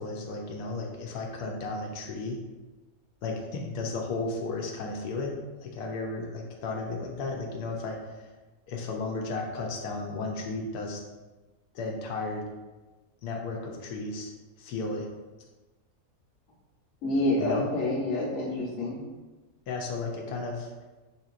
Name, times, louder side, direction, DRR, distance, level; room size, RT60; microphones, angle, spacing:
voice 1, 0.0-2.4 3.2-8.3 8.7-11.0 11.7-12.5 13.2-15.1 17.4-17.7 19.7-20.7, left 3 dB, 85° left, 1 dB, 1.1 m, -34 dB
voice 2, 17.0-19.0, left 1 dB, 45° left, -3 dB, 0.9 m, -27 dB
4.7 x 2.8 x 2.4 m, 1.2 s
omnidirectional pair, 1.6 m